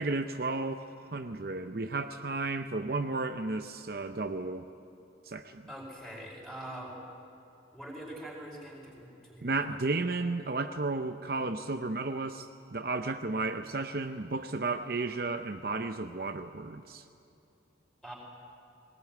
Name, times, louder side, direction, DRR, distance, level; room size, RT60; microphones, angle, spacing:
voice 1, 0.0-4.7 5.3-5.7 9.4-17.0, right 3 dB, 50° right, 7 dB, 0.7 m, -33 dB
voice 2, 5.7-7.0 7.7-9.8 18.0-18.1, right 1 dB, 5° left, -2 dB, 5.2 m, -44 dB
20.5 x 19.0 x 9.4 m, 2.8 s
head